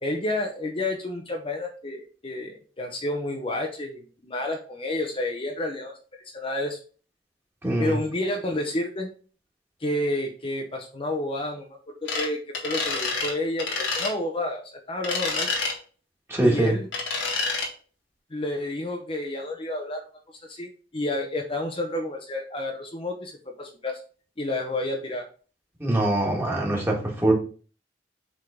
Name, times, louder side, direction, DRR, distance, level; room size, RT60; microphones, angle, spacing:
voice 1, 0.0-6.8 7.8-9.1 9.8-11.7 12.0-15.5 16.4-16.9 18.3-20.1 20.5-24.0 24.4-25.3, left 1 dB, 30° left, 2 dB, 0.8 m, -30 dB
voice 2, 7.6-8.0 16.3-16.7 25.8-27.0 27.2-27.3, right 1 dB, 15° right, -2 dB, 1.9 m, -22 dB
sound 1, 12.1-12.3 12.5-13.3 13.6-14.1 15.0-15.8 16.9-17.7, left 3 dB, 90° left, 1.8 m, -28 dB
7.7 x 3.7 x 3.7 m, 0.39 s
head